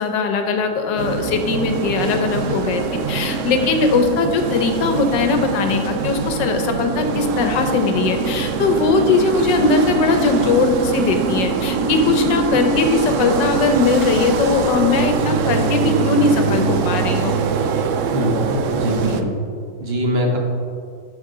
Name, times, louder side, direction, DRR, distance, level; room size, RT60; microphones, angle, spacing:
voice 1, 0.0-2.8 3.1-17.3 19.1-19.2, left 4 dB, 85° left, 6 dB, 1.5 m, -19 dB
sound 1, 1.0-19.2, right 4 dB, 80° right, 0.7 m, -22 dB
voice 2, 18.1-19.3 19.8-20.4, equal, 45° right, 1 dB, 1.0 m, -22 dB
12.0 x 5.2 x 3.8 m, 2.3 s
omnidirectional pair, 1.9 m